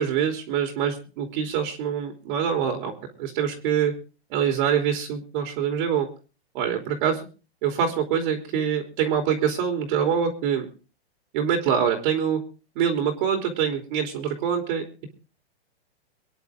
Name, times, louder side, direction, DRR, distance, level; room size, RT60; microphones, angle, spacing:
voice 1, 0.0-2.9 3.2-3.9 4.3-6.1 6.5-7.2 7.6-10.7 11.3-12.4 12.7-14.8, right 8 dB, 45° right, 4 dB, 3.3 m, -25 dB
24.5 x 10.5 x 3.6 m, 0.35 s
hypercardioid pair, 140°, 34 cm